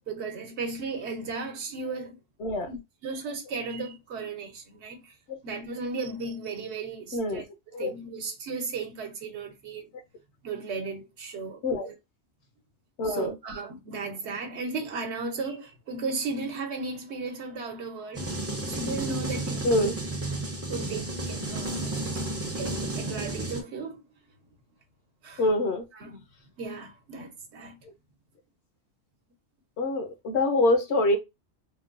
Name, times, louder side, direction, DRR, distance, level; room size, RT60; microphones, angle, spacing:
voice 1, 0.1-2.2 2.6-5.1 5.4-9.9 10.4-11.9 13.0-18.4 18.7-19.9 20.7-21.9 22.6-24.0 25.2-25.4 25.9-26.2 26.6-27.8, right 4 dB, 75° right, 1.1 m, -35 dB
voice 2, 7.1-7.4 7.7-7.9 11.6-11.9 13.0-13.4 19.6-19.9 25.4-25.8 29.8-31.2, left 2 dB, 75° left, 1.0 m, -25 dB
sound 1, 18.2-23.6, right 2 dB, 20° right, 0.4 m, -32 dB
3.7 x 2.2 x 2.4 m
omnidirectional pair, 1.2 m